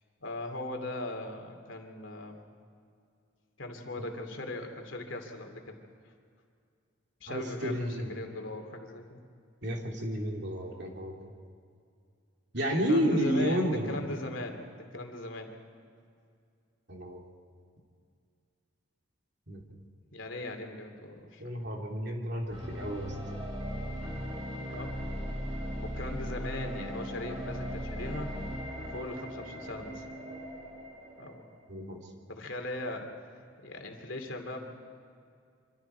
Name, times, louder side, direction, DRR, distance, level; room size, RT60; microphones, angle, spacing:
voice 1, 0.2-2.4 3.6-5.7 7.2-9.2 12.9-14.6 14.9-15.5 20.1-21.5 24.7-24.9 25.7-28.3 28.8-30.0 31.2-31.4 32.3-33.1 33.6-34.6, left 1 dB, 75° left, 4 dB, 2.7 m, -39 dB
voice 2, 7.3-8.2 9.6-11.1 12.5-14.0 16.9-17.2 19.5-19.6 21.4-23.1 31.7-32.0, equal, 55° right, 0 dB, 3.0 m, -31 dB
sound 1, 22.5-31.6, equal, 30° right, 5.1 m, -38 dB
26.0 x 25.5 x 4.6 m, 2.3 s
head